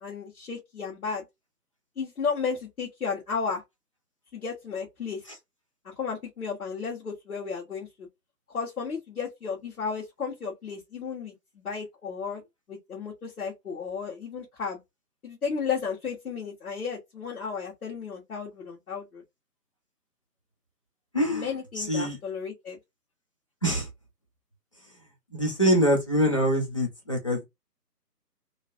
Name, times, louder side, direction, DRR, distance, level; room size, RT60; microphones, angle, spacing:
voice 1, 0.0-1.2 2.0-3.6 4.3-5.2 5.8-8.1 8.5-12.4 12.7-14.8 15.2-19.2 21.3-22.8, left 5 dB, 60° left, 1.5 m, -33 dB
voice 2, 21.1-21.5 21.8-22.2 23.6-23.9 25.3-27.4, equal, 20° left, 0.7 m, -24 dB
3.0 x 2.6 x 2.6 m
figure-of-eight pair, 145°, 49 cm